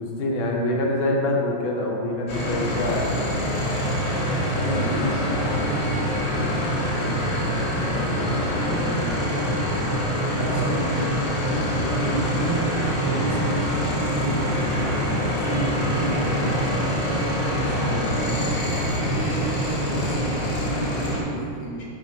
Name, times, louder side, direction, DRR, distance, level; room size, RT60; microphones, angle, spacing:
voice 1, 0.0-3.1 10.6-10.7, left 2 dB, 80° left, -1 dB, 1.8 m, -25 dB
sound 1, 2.3-21.2, equal, 50° left, 1.9 m, -25 dB
voice 2, 4.6-7.4 7.7-9.5 10.3-15.0 15.4-18.5 18.9-21.9, right 1 dB, 15° right, -6 dB, 0.5 m, -31 dB
6.1 x 3.7 x 5.7 m, 2.4 s
omnidirectional pair, 2.3 m